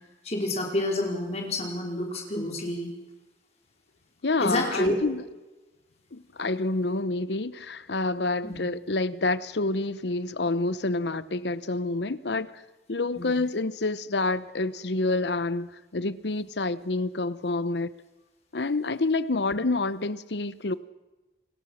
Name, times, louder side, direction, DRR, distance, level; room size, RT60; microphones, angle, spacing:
voice 1, 0.2-2.9 4.4-5.0 8.4-8.6 13.1-13.3, left 1 dB, 35° left, 4.9 m, -28 dB
voice 2, 4.2-5.2 6.1-12.6 12.9-17.9 18.5-20.7, left 2 dB, 75° left, 0.9 m, -28 dB
29.0 x 19.5 x 6.4 m
head